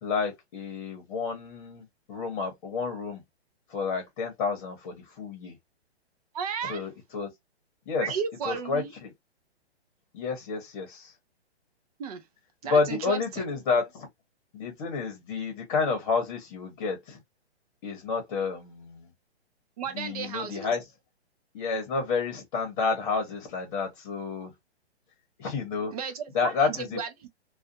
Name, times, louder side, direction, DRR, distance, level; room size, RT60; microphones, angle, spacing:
voice 1, 0.0-3.2 3.7-5.5 6.7-7.3 7.9-8.1 8.4-9.1 10.1-11.1 12.6-14.1 14.5-17.2 17.8-19.1 19.9-20.8 21.5-24.5 25.4-25.9 26.3-27.0, left 4 dB, 35° left, 0.9 m, -30 dB
voice 2, 6.3-6.9 8.0-8.9 12.0-12.2 12.6-13.5 19.8-20.8 25.9-27.3, right 6 dB, 35° right, 0.5 m, -34 dB
2.5 x 2.3 x 2.5 m
hypercardioid pair, 145°, 34 cm